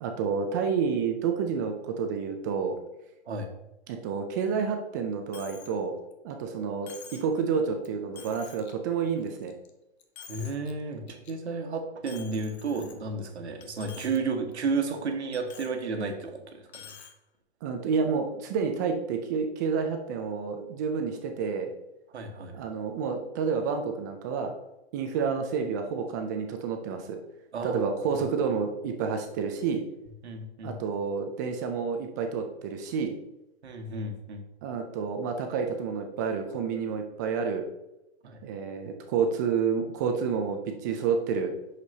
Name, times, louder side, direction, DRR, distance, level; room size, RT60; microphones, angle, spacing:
voice 1, 0.0-2.8 3.9-5.9 6.2-9.5 17.6-21.7 22.5-24.5 24.9-27.2 27.6-29.8 30.6-33.1 34.6-37.6 38.4-41.5, right 6 dB, 20° right, 5 dB, 0.4 m, -29 dB
Coin (dropping), 5.3-5.7 6.1-6.2 6.9-7.3 7.8-7.9 8.2-8.7 9.2-9.7 10.0-10.7 11.1-11.3 12.1-13.3 13.6-14.2 14.5-14.6 15.3-15.7 16.7-17.1, left 6 dB, 70° left, 1.1 m, -48 dB
voice 2, 10.3-16.9 22.1-22.6 27.5-27.8 30.2-30.7 33.6-34.4 38.2-38.4, right 4 dB, 80° right, 5 dB, 1.4 m, -32 dB
7.9 x 6.6 x 2.7 m, 0.91 s
hypercardioid pair, 140°, 33 cm